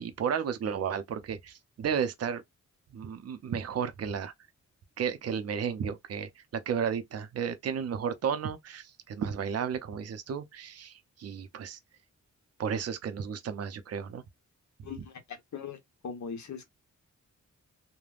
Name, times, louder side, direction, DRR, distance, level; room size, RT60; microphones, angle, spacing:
voice 1, 0.0-2.4 2.9-4.3 5.0-11.8 12.6-14.2, right 7 dB, 55° right, 0.5 m, -33 dB
voice 2, 14.8-15.8 16.0-16.6, left 6 dB, 65° left, 1.1 m, -40 dB
3.3 x 2.1 x 2.3 m
wide cardioid pair, 130°, 31 cm